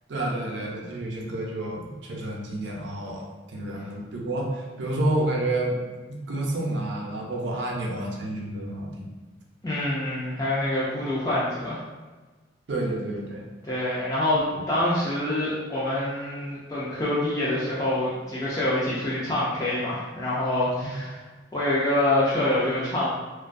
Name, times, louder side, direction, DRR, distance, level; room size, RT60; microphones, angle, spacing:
voice 1, 0.1-5.8 6.1-9.0 12.7-13.4 20.8-20.9, right 1 dB, 70° right, -1 dB, 0.5 m, -29 dB
voice 2, 9.6-11.8 13.6-21.2 21.5-23.1, left 1 dB, 20° left, -9 dB, 0.4 m, -26 dB
2.3 x 2.2 x 2.5 m, 1.3 s
head